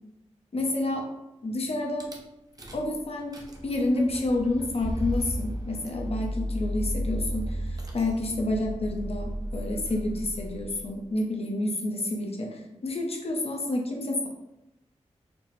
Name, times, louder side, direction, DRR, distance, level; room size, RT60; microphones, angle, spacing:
voice 1, 0.5-1.0 1.4-2.1 2.7-3.3 3.6-14.3, left 2 dB, 55° left, 1 dB, 0.7 m, -29 dB
Rattle / Car / Engine starting, 2.0-2.2 2.6-2.9 3.2-10.9, equal, 30° right, 0.7 m, -34 dB
4.3 x 2.1 x 3.1 m, 0.93 s
wide cardioid pair, 80°, 12 cm